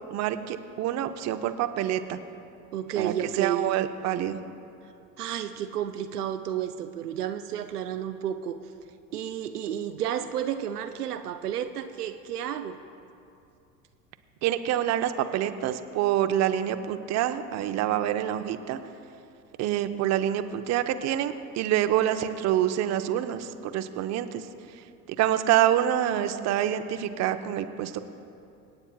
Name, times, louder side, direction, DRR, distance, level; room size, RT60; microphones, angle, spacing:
voice 1, 0.1-2.2 3.0-4.4 14.4-18.8 19.6-28.0, right 11 dB, 35° right, 9 dB, 0.7 m, -27 dB
voice 2, 2.7-3.6 5.2-8.6 9.1-12.8, right 10 dB, 85° right, 8 dB, 0.6 m, -31 dB
25.5 x 8.8 x 2.3 m, 2.6 s
hypercardioid pair, 80°, 45 cm